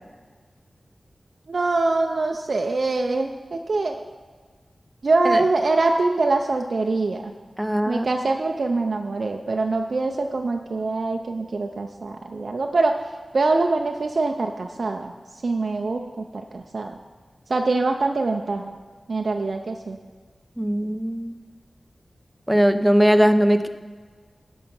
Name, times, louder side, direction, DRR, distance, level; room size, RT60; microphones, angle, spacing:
voice 1, 1.5-4.1 5.0-7.3 7.9-13.0 13.3-15.1 15.4-17.0 17.5-18.8 19.1-20.0, right 3 dB, 70° right, 3 dB, 0.5 m, -24 dB
voice 2, 7.6-8.1 20.6-21.3 22.5-23.7, equal, 5° right, 10 dB, 0.6 m, -19 dB
12.0 x 5.6 x 5.5 m, 1.5 s
wide cardioid pair, 55°, 0 cm